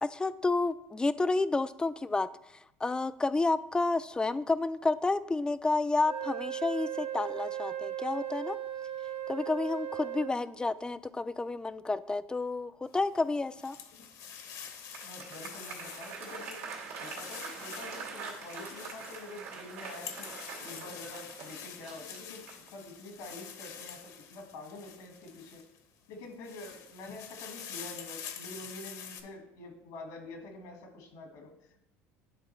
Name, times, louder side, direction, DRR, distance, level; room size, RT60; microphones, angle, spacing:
voice 1, 0.1-2.3 2.8-8.6 9.3-13.8, left 3 dB, 10° left, 14 dB, 0.3 m, -30 dB
Wind instrument woodwind instrument, 6.0-10.4, right 11 dB, 70° right, 1.0 m, -37 dB
sound 1, 12.9-25.8 26.2-29.2, left 8 dB, 60° left, 0.9 m, -46 dB
Applause, 14.6-22.8, right 5 dB, 85° right, 1.9 m, -44 dB
voice 2, 15.0-16.6 16.9-22.4 22.7-25.6 26.1-31.8, left 2 dB, 75° left, 4 dB, 1.6 m, -47 dB
10.5 x 3.6 x 3.2 m, 0.82 s
supercardioid pair, 90°, 7 cm